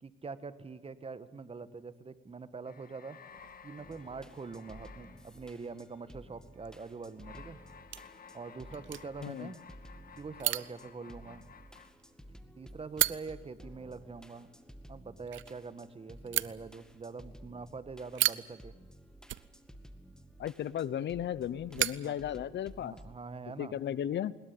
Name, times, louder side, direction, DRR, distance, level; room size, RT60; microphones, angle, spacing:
voice 1, 0.0-3.2 3.6-7.6 8.3-9.6 10.2-11.4 12.6-14.5 14.9-18.8 22.0-22.2 22.8-23.8, right 4 dB, 30° right, 13 dB, 1.5 m, -44 dB
sound 1, 2.6-6.1 6.9-11.9, left 6 dB, 45° left, 2.2 m, -55 dB
sound 2, 3.3-22.9, right 13 dB, 70° right, 0.8 m, -40 dB
sound 3, 3.8-23.2, equal, 5° left, 2.1 m, -54 dB
voice 2, 20.4-22.9 23.6-24.3, left 10 dB, 65° left, 19 dB, 0.9 m, -35 dB
21.5 x 20.5 x 8.6 m, 1.3 s
cardioid pair, 90°, 20 cm